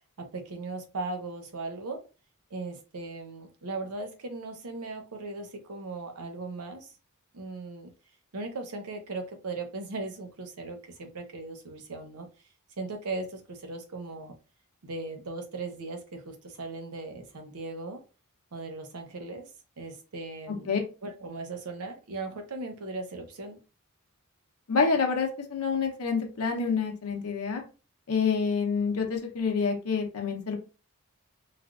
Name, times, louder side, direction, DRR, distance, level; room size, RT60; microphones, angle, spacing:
voice 1, 0.0-2.0 2.5-6.9 7.3-7.9 8.3-12.3 12.8-14.4 14.8-18.0 18.5-19.5 19.8-20.7 21.0-23.6, right 3 dB, 90° right, 0.7 m, -38 dB
voice 2, 24.7-27.6 28.1-30.6, left 5 dB, 90° left, 0.8 m, -27 dB
3.3 x 2.4 x 2.4 m
head